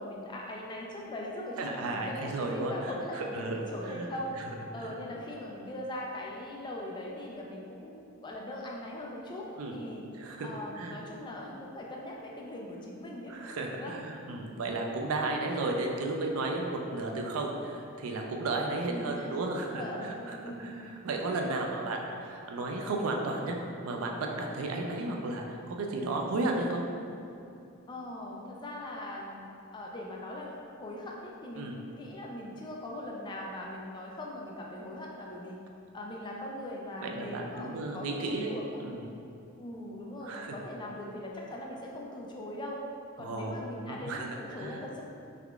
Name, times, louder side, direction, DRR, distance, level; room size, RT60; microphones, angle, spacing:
voice 1, 0.0-4.4 4.7-7.9 8.2-10.0 10.4-13.3 13.7-14.0 18.9-20.8 27.9-29.4 29.7-35.6 35.9-38.8 39.6-42.8 43.2-45.0, left 1 dB, 20° left, -2 dB, 0.3 m, -40 dB
voice 2, 1.6-3.6 3.9-4.1 4.8-4.9 9.6-9.8 10.2-10.5 10.8-11.0 13.3-23.6 23.8-26.8 31.6-31.8 37.0-38.5 38.8-39.1 40.2-40.6 43.2-43.5 43.9-44.8, right 2 dB, 75° right, 1 dB, 0.4 m, -34 dB
3.5 x 3.3 x 2.4 m, 2.6 s
head